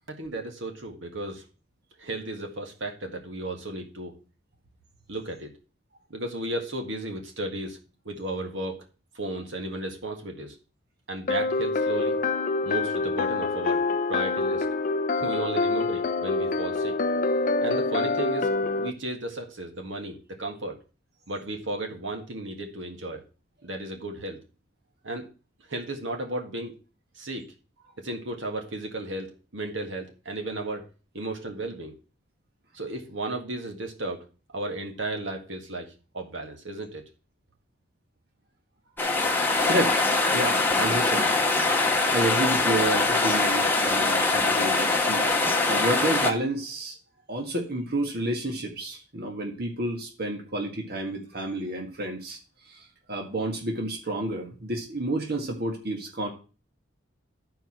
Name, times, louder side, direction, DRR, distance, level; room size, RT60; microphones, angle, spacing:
voice 1, 0.1-1.4 2.0-4.1 5.1-5.5 6.1-7.8 8.1-8.9 9.2-10.6 11.1-12.2 12.6-13.8 14.1-14.7 15.2-16.9 17.6-20.8 21.3-23.2 23.6-24.4 25.0-25.3 25.7-26.8 27.2-27.5 28.0-30.8 31.1-31.9 32.7-34.2 34.5-37.0, right 2 dB, 75° right, 3 dB, 1.9 m, -34 dB
sound 1, 11.3-18.9, left 3 dB, 45° left, 0.5 m, -26 dB
sound 2, 39.0-46.3, left 3 dB, 10° left, 1.1 m, -23 dB
voice 2, 39.6-40.1 40.3-41.3 42.1-45.3 45.7-47.0 47.3-52.4 52.7-56.3, right 1 dB, 55° right, 1 dB, 1.7 m, -30 dB
11.5 x 4.8 x 5.8 m, 0.35 s
head